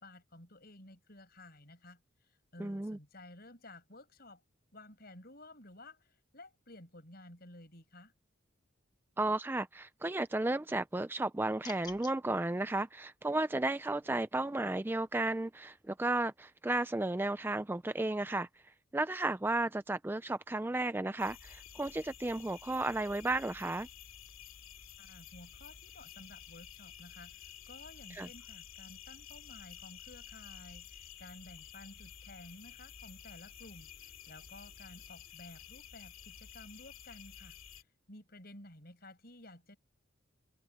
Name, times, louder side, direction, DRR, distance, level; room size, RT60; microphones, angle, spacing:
voice 1, 0.0-2.0 2.3-4.4 4.7-8.1 25.0-37.6 38.1-39.8, left 1 dB, 50° left, 6.9 m, -54 dB
voice 2, 2.6-3.0 9.2-18.5 18.9-23.9 28.1-28.3, right 2 dB, 10° right, 0.3 m, -33 dB
sound 1, 11.6-12.2, left 5 dB, 20° left, 1.3 m, -48 dB
sound 2, 21.2-37.8, left 8 dB, 80° left, 2.9 m, -52 dB
head